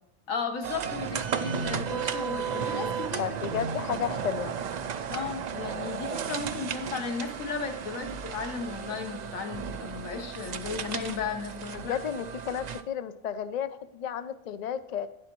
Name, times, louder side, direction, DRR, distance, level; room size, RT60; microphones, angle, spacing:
voice 1, 0.3-3.4 3.9-4.1 5.1-12.0, left 5 dB, 90° left, 5 dB, 1.5 m, -35 dB
sound 1, 0.6-12.8, right 7 dB, 85° right, 0.3 m, -34 dB
voice 2, 3.2-4.5 11.7-15.1, left 8 dB, 60° left, 11 dB, 0.4 m, -32 dB
11.5 x 9.5 x 3.0 m, 0.79 s
omnidirectional pair, 1.4 m